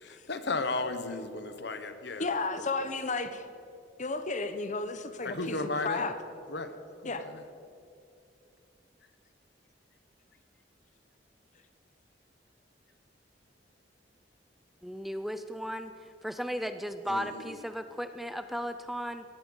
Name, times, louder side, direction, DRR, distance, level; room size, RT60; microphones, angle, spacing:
voice 1, 0.0-2.2 5.2-6.1 6.5-6.7 7.0-7.3 17.1-17.2, left 3 dB, 65° left, 9 dB, 1.2 m, -34 dB
voice 2, 2.2-3.5 4.0-6.2 7.0-7.3, left 3 dB, 40° left, 10 dB, 1.0 m, -33 dB
voice 3, 14.8-15.9 16.2-19.2, equal, ahead, 9 dB, 0.5 m, -35 dB
17.5 x 9.0 x 8.0 m, 2.6 s
head